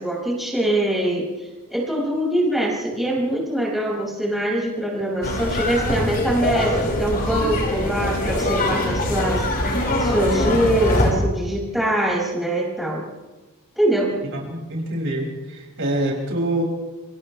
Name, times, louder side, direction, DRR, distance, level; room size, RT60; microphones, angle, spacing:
voice 1, 0.0-9.4 10.0-13.0 13.8-14.1, right 1 dB, ahead, -4 dB, 6.0 m, -23 dB
sound 1, 5.2-11.1, left 1 dB, 45° left, 5.5 m, -23 dB
voice 2, 14.3-16.6, right 1 dB, 60° right, -1 dB, 6.4 m, -25 dB
29.0 x 27.0 x 3.4 m, 1.2 s
head